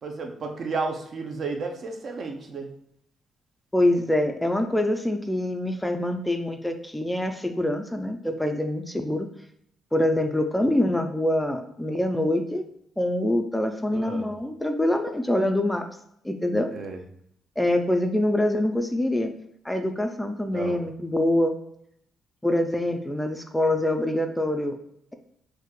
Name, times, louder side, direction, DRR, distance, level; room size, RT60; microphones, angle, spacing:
voice 1, 0.0-2.7 13.9-14.3 16.7-17.0 20.5-20.8, right 4 dB, 55° right, 4 dB, 0.5 m, -32 dB
voice 2, 3.7-9.3 9.9-12.6 13.0-15.8 16.2-16.7 17.6-19.3 19.6-21.6 22.4-24.8, left 1 dB, 5° left, 5 dB, 0.3 m, -25 dB
3.5 x 2.6 x 2.2 m, 0.72 s
cardioid pair, 90°, 0 cm